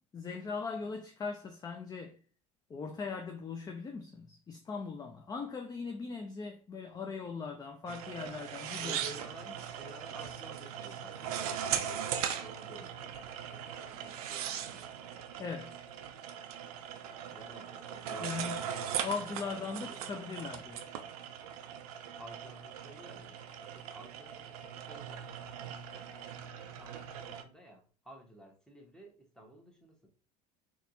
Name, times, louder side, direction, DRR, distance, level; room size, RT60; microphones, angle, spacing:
voice 1, 0.0-2.2 2.7-9.0 15.4-15.8 18.2-18.5 19.0-20.9, left 5 dB, 20° left, 0.5 m, -40 dB
sound 1, 7.9-27.4, right 9 dB, 65° right, 0.5 m, -40 dB
voice 2, 8.8-15.0 17.3-18.8 19.5-20.3 22.2-25.3 25.9-30.1, right 1 dB, 5° left, 1.2 m, -53 dB
4.1 x 3.0 x 2.6 m
figure-of-eight pair, 70°, 20 cm